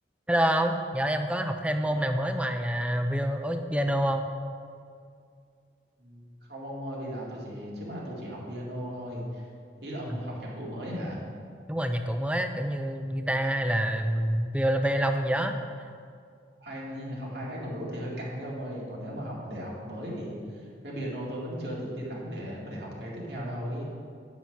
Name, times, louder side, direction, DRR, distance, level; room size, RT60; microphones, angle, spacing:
voice 1, 0.3-4.2 10.1-10.2 11.7-15.5, right 1 dB, 5° right, 6 dB, 0.5 m, -27 dB
voice 2, 1.8-2.3 6.0-6.2 6.5-9.5 9.8-11.2 16.6-23.9, equal, 70° right, -4 dB, 2.3 m, -36 dB
9.6 x 5.9 x 5.8 m, 2.2 s
head